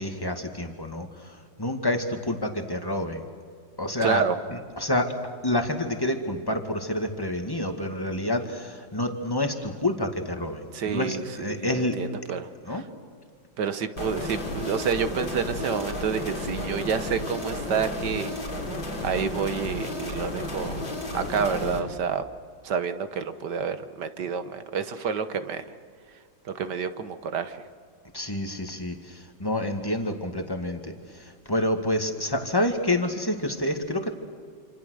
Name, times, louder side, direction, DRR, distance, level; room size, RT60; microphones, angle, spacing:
voice 1, 0.0-3.3 3.8-4.2 4.8-5.1 5.4-12.0 12.6-12.8 28.1-34.1, left 1 dB, 10° left, 4 dB, 2.1 m, -28 dB
voice 2, 4.0-4.4 10.7-12.9 13.6-18.3 19.0-20.9 21.1-22.3 22.6-25.6 26.5-27.7, right 6 dB, 65° right, 10 dB, 1.7 m, -29 dB
sound 1, 14.0-21.8, left 1 dB, 75° left, 4.7 m, -33 dB
27.5 x 27.0 x 6.5 m, 2.1 s
omnidirectional pair, 2.0 m